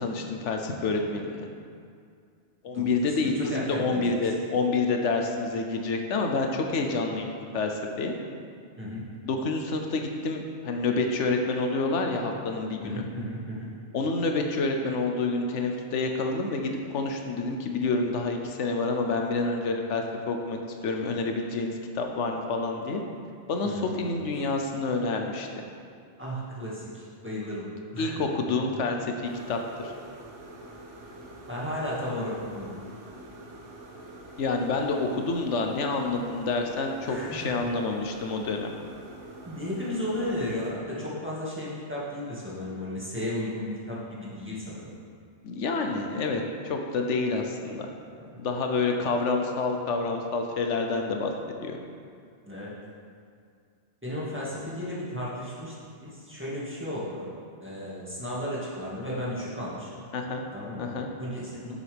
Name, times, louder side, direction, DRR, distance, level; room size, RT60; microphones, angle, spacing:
voice 1, 0.0-1.5 2.6-8.2 9.2-13.0 13.9-23.0 23.5-25.6 28.0-29.9 34.4-38.7 45.4-47.9 48.4-51.3 51.6-51.8 60.1-60.4 60.8-61.1, left 3 dB, 85° left, 3 dB, 1.1 m, -28 dB
voice 2, 2.7-4.0 8.8-9.1 12.8-13.7 23.6-24.4 26.2-27.7 27.9-28.3 31.5-32.8 37.0-37.5 39.5-44.9 48.2-48.4 52.5-52.7 54.0-55.7 56.0-57.3 57.6-59.9 60.5-60.9 61.2-61.7, left 1 dB, 10° right, -8 dB, 1.9 m, -34 dB
sound 1, 29.2-40.7, right 1 dB, 90° right, 1.3 m, -46 dB
10.0 x 7.4 x 3.5 m, 2.3 s
omnidirectional pair, 1.2 m